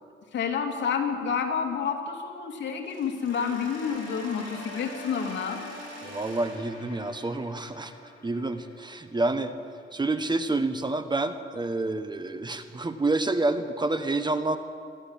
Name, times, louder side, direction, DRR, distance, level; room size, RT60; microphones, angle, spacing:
voice 1, 0.3-5.6, left 6 dB, 65° left, 3 dB, 2.8 m, -29 dB
Mechanisms, 2.8-8.7, right 4 dB, 75° right, 4.4 m, -49 dB
sound 1, 3.3-10.2, left 5 dB, 85° left, 3.1 m, -44 dB
voice 2, 6.0-7.9 8.2-9.5 9.9-14.6, right 2 dB, 20° right, 9 dB, 1.3 m, -28 dB
22.5 x 14.0 x 9.0 m, 2.3 s
cardioid pair, 90°, 20 cm